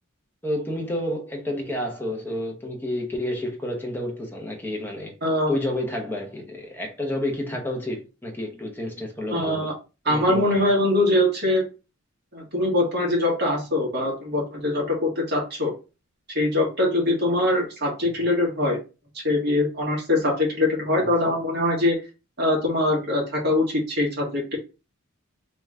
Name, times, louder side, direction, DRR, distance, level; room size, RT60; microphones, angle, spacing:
voice 1, 0.4-5.1 5.5-9.7 10.0-10.6 21.0-21.1, left 1 dB, 10° left, 1.0 m, -30 dB
voice 2, 5.2-5.6 9.3-9.7 10.1-11.6 12.3-15.7 16.4-18.8 19.1-22.0 22.4-24.6, left 1 dB, 50° right, 1.6 m, -23 dB
3.4 x 3.0 x 3.6 m
head